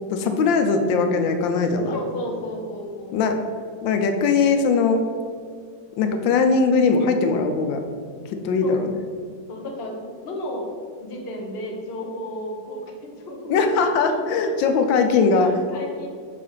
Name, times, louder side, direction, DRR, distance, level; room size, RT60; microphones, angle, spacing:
voice 1, 0.1-1.9 3.1-3.4 3.8-5.0 6.0-7.8 8.4-8.8 13.5-15.5, left 4 dB, 90° left, 6 dB, 1.4 m, -20 dB
voice 2, 1.9-3.2 8.6-8.8 9.5-10.7 11.0-14.5 14.7-14.8 15.1-16.1, left 1 dB, 45° left, 0 dB, 0.9 m, -33 dB
5.7 x 3.3 x 5.4 m, 2.1 s
omnidirectional pair, 2.0 m